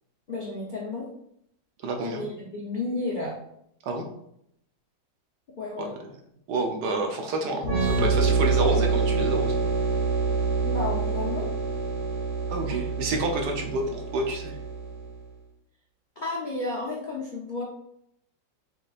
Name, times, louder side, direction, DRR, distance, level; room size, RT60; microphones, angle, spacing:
voice 1, 0.3-1.1 2.0-3.4 5.6-5.9 10.6-11.5 16.2-17.6, left 2 dB, 70° left, -3 dB, 0.4 m, -32 dB
voice 2, 1.8-2.2 3.9-4.0 5.8-5.9 6.5-9.5 12.5-14.6, right 2 dB, 70° right, 3 dB, 1.2 m, -29 dB
sound 1, 7.6-15.2, right 4 dB, 35° right, 1.4 m, -26 dB
6.5 x 3.2 x 2.4 m, 0.74 s
omnidirectional pair, 2.0 m